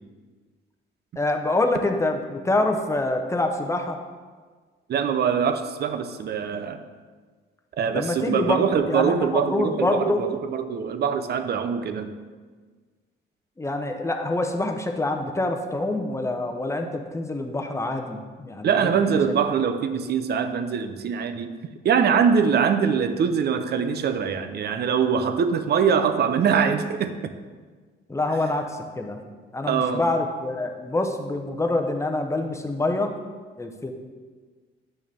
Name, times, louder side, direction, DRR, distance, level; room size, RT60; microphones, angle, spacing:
voice 1, 1.2-4.0 7.9-10.2 13.6-19.1 28.1-29.2 29.5-33.1 33.6-33.9, left 2 dB, 15° left, 4 dB, 0.8 m, -26 dB
voice 2, 4.9-6.8 7.7-12.1 18.6-21.5 21.8-27.3 29.7-30.0, right 6 dB, 55° right, 9 dB, 0.6 m, -23 dB
9.0 x 6.2 x 3.5 m, 1.5 s
cardioid pair, 90°, 20 cm